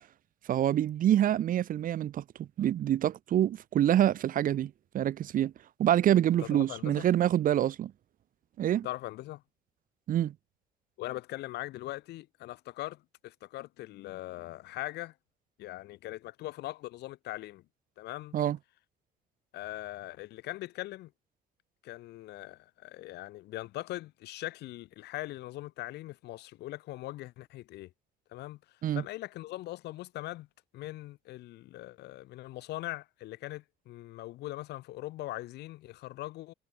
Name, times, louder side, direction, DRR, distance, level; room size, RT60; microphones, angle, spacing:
voice 1, 0.5-5.5 5.8-7.9 8.6-8.9 10.1-10.3 18.3-18.6 28.8-29.0, right 11 dB, 55° right, 1.0 m, -26 dB
voice 2, 6.4-7.1 8.8-9.4 11.0-15.1 15.6-17.6 18.0-18.4 19.5-21.1 21.8-27.9 28.3-28.6 28.9-30.5 30.7-36.5, left 17 dB, 80° left, 2.5 m, -41 dB
cardioid pair, 110°, 17 cm